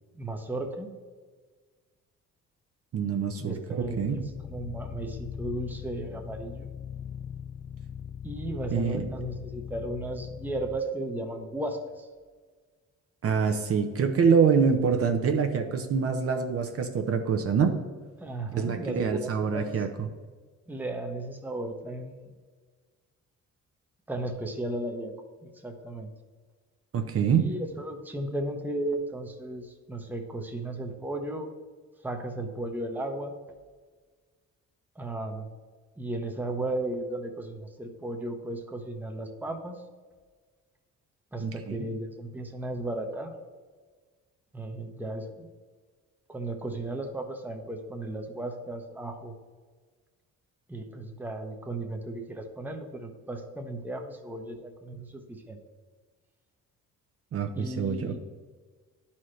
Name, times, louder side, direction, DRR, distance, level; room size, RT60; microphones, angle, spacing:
voice 1, 0.1-0.9 3.4-6.7 8.2-12.1 18.2-19.8 20.7-22.3 24.1-25.1 25.4-26.1 27.3-31.5 32.0-33.3 35.0-35.5 36.0-39.8 41.3-43.3 44.5-45.5 46.3-49.3 50.7-55.6 57.6-58.2, right 1 dB, 5° right, 4 dB, 0.8 m, -35 dB
voice 2, 2.9-4.2 8.7-9.1 13.2-17.7 18.5-20.1 26.9-27.5 41.4-41.9 57.3-58.2, right 6 dB, 50° right, 5 dB, 0.8 m, -25 dB
sound 1, 3.8-10.8, left 8 dB, 25° left, 0.4 m, -39 dB
10.5 x 4.3 x 3.2 m, 1.5 s
cardioid pair, 90°, 30 cm